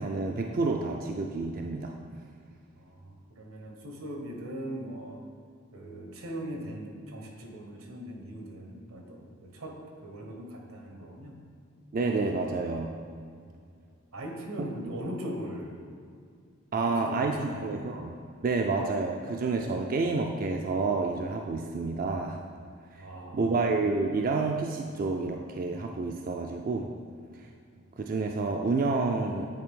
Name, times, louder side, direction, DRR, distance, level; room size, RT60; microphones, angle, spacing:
voice 1, 0.0-1.9 11.9-12.9 16.7-18.1 18.4-22.4 23.3-26.9 28.0-29.5, right 3 dB, 40° right, 2 dB, 0.3 m, -29 dB
voice 2, 2.8-5.2 5.7-11.4 13.4-13.6 14.1-15.9 16.7-18.0 23.0-23.5 27.7-27.8, equal, 85° right, 1 dB, 1.2 m, -40 dB
9.4 x 4.4 x 3.7 m, 2.3 s
head